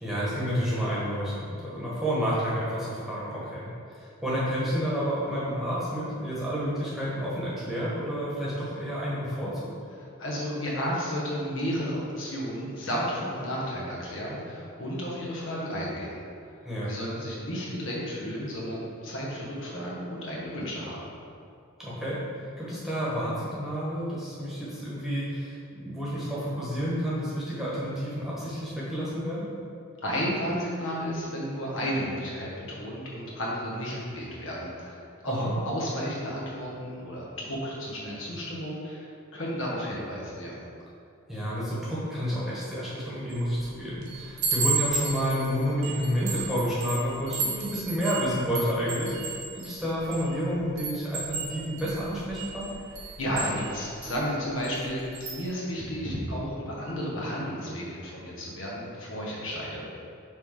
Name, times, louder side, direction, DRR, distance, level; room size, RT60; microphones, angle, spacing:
voice 1, 0.0-3.7 3.9-9.6 16.6-16.9 21.8-22.2 22.6-29.5 35.2-35.5 41.3-52.7, equal, ahead, -9 dB, 1.3 m, -30 dB
voice 2, 10.0-16.2 16.4-16.5 16.9-21.0 30.0-40.5 53.2-55.0 55.3-59.8, equal, 65° left, -5 dB, 1.3 m, -32 dB
Chime, 43.3-43.6 44.0-50.3 50.8-54.2 54.6-54.9 55.1-55.4, right 4 dB, 70° right, 1.2 m, -33 dB
6.3 x 3.7 x 4.8 m, 2.5 s
head